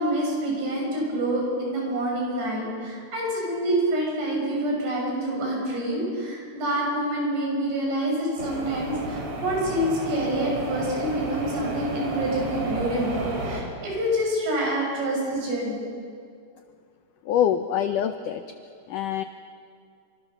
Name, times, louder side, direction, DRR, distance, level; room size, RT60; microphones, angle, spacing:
voice 1, 0.0-15.8, right 1 dB, 80° right, -1 dB, 8.9 m, -27 dB
sound 1, 8.4-13.6, right 2 dB, 40° right, 4.6 m, -32 dB
voice 2, 17.3-18.4 18.9-19.2, left 9 dB, 85° left, 9 dB, 1.8 m, -24 dB
27.0 x 26.0 x 7.0 m, 2.3 s
omnidirectional pair, 4.7 m